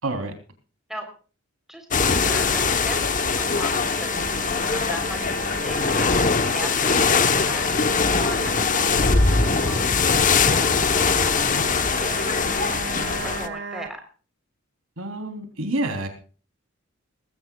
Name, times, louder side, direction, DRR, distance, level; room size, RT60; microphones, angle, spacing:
voice 1, 0.0-0.3 15.0-16.1, right 2 dB, 90° right, 6 dB, 3.4 m, -28 dB
voice 2, 1.7-3.7 4.0-4.2 4.6-5.3 5.6-7.7 8.2-11.0 11.5-14.0, equal, ahead, 4 dB, 3.5 m, -39 dB
sound 1, 1.9-13.5, left 5 dB, 40° left, 1.0 m, -22 dB
sound 2, 2.0-13.9, right 5 dB, 60° right, 1.9 m, -35 dB
20.0 x 16.5 x 2.3 m, 0.38 s
head